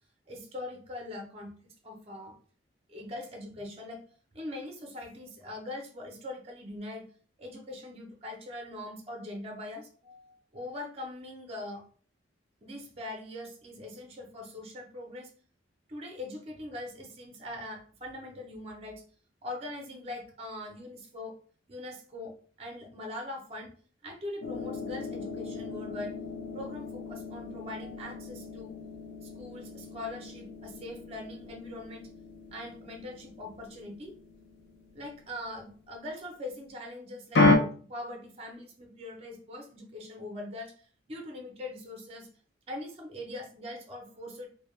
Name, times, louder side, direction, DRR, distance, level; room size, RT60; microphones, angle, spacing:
voice 1, 0.3-1.6 1.8-2.4 2.9-4.0 4.3-7.1 7.4-11.8 12.6-15.3 15.9-19.0 19.4-21.3 21.7-23.7 24.0-26.1 26.5-28.8 29.2-32.1 32.5-34.2 34.9-40.7 41.1-42.3 42.7-44.5, left 1 dB, 30° right, 2 dB, 0.5 m, -42 dB
sound 1, 24.4-35.9 37.3-37.6, left 3 dB, 65° left, 0.4 m, -33 dB
2.1 x 2.1 x 3.0 m, 0.43 s
head